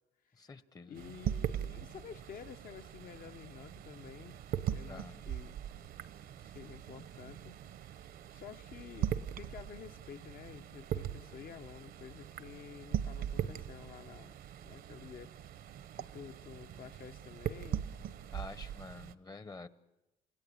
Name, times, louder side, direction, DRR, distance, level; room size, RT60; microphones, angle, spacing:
voice 1, 0.3-1.0 4.9-5.2 18.3-19.7, left 3 dB, 20° left, 0.9 m, -48 dB
voice 2, 0.9-5.6 6.4-7.6 8.3-14.3 14.6-15.3 15.9-17.9, left 8 dB, 55° left, 1.1 m, -50 dB
sound 1, 1.0-19.1, right 10 dB, 65° right, 1.0 m, -41 dB
29.5 x 16.5 x 8.7 m
cardioid pair, 110°, 17 cm